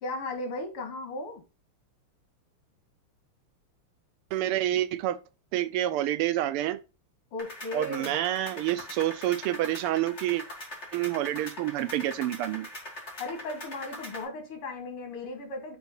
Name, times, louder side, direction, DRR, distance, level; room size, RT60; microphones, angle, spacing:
voice 1, 0.0-1.4 7.3-8.2 13.2-15.8, left 2 dB, 85° left, 2.4 m, -36 dB
voice 2, 4.3-5.2 5.5-6.8 7.7-10.4 10.9-12.7, right 13 dB, 90° right, 1.5 m, -28 dB
sound 1, 7.4-14.2, left 1 dB, 30° left, 2.0 m, -42 dB
6.1 x 3.0 x 5.2 m
omnidirectional pair, 2.4 m